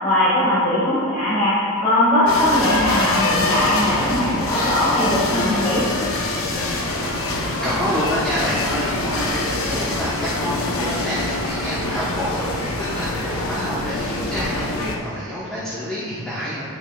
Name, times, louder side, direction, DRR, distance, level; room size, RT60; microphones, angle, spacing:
voice 1, 0.0-1.5 1.8-5.8, left 1 dB, 25° left, -11 dB, 1.7 m, -19 dB
sound 1, 2.3-15.0, left 2 dB, 65° left, 0.8 m, -25 dB
voice 2, 7.1-16.6, equal, 5° left, -10 dB, 1.0 m, -27 dB
10.5 x 6.0 x 2.3 m, 2.3 s
head